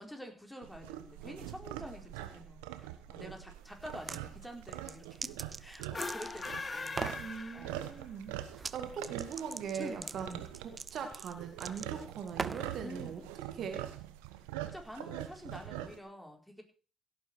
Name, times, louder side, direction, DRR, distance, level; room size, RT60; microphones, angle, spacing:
voice 1, 0.0-2.6 3.1-5.3 5.6-8.0 9.8-10.4 12.8-13.2 14.7-16.6, equal, 5° left, 3 dB, 4.9 m, -47 dB
sound 1, 0.6-16.0, right 13 dB, 85° right, 1.1 m, -44 dB
sound 2, 3.8-4.2 4.7-6.5 6.9-7.2 8.5-8.8 9.0-12.8, right 4 dB, 35° right, 0.7 m, -41 dB
sound 3, 5.8-8.2, left 3 dB, 35° left, 1.7 m, -40 dB
voice 2, 7.2-13.2 13.5-13.8, right 6 dB, 65° right, 6 dB, 2.3 m, -41 dB
16.5 x 9.1 x 4.8 m, 0.37 s
hypercardioid pair, 45°, 0 cm